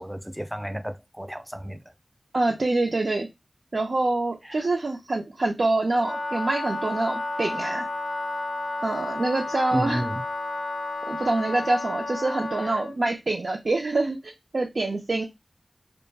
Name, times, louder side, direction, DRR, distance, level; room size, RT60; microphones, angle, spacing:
voice 1, 0.0-1.8 4.4-4.7 9.7-10.2 12.6-12.8, equal, 5° right, 0.4 m, -32 dB
voice 2, 2.3-3.3 3.7-7.9 8.8-10.0 11.1-15.2, right 2 dB, 75° right, 0.4 m, -25 dB
Wind instrument woodwind instrument, 5.9-13.0, left 2 dB, 90° left, 0.3 m, -32 dB
2.3 x 2.0 x 3.2 m
wide cardioid pair, 55°, 0 cm